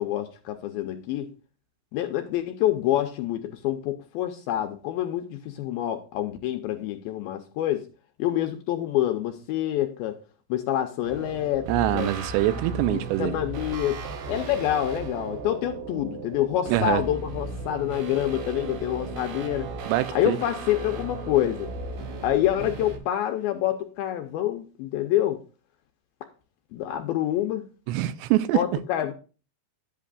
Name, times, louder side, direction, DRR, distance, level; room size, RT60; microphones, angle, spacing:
voice 1, 0.0-1.3 1.9-7.9 8.2-10.2 10.5-12.1 12.9-14.0 14.3-19.7 20.1-21.7 22.2-25.4 26.2-26.3 26.7-27.7 28.5-29.1, left 12 dB, 85° left, 2.2 m, -27 dB
sound 1, 11.0-23.0, right 3 dB, 65° right, 2.8 m, -36 dB
voice 2, 11.7-13.4 16.7-17.0 19.9-20.4 27.9-28.6, right 15 dB, 85° right, 2.8 m, -24 dB
11.0 x 8.4 x 2.5 m
omnidirectional pair, 4.9 m